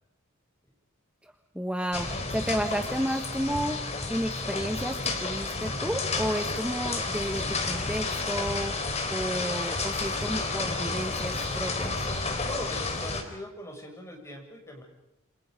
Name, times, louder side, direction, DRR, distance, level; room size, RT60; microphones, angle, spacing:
voice 1, 1.2-8.8 9.1-12.0, equal, 5° right, 6 dB, 1.4 m, -32 dB
sound 1, 1.9-13.2, left 3 dB, 35° left, 3.9 m, -31 dB
voice 2, 12.4-14.8, left 1 dB, 15° left, 1 dB, 7.3 m, -40 dB
29.0 x 27.0 x 5.3 m, 0.91 s
head